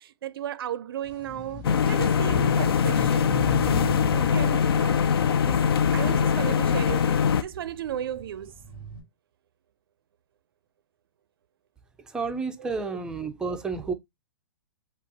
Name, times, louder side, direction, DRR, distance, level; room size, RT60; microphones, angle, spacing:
voice 1, 0.0-3.8 4.1-5.6 5.9-8.6 12.6-12.7, right 11 dB, 75° right, 0.4 m, -35 dB
sound 1, 1.0-6.6 7.1-9.0, left 1 dB, 20° left, 2.2 m, -38 dB
sound 2, 1.6-7.4, left 7 dB, 85° left, 0.5 m, -22 dB
voice 2, 12.1-13.9, right 4 dB, 5° right, 0.4 m, -30 dB
5.0 x 2.3 x 3.9 m
hypercardioid pair, 155°, 12 cm